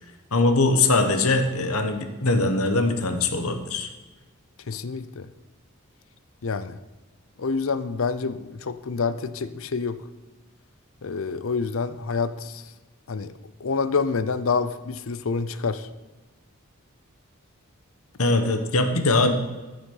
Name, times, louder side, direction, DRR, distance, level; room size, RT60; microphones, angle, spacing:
voice 1, 0.3-3.9 18.2-19.3, left 2 dB, 85° left, 7 dB, 1.3 m, -21 dB
voice 2, 4.7-5.3 6.4-6.8 7.4-10.0 11.0-12.6 13.1-13.3 13.6-15.9, left 4 dB, 65° left, 14 dB, 0.6 m, -27 dB
14.5 x 6.6 x 5.5 m, 1.2 s
head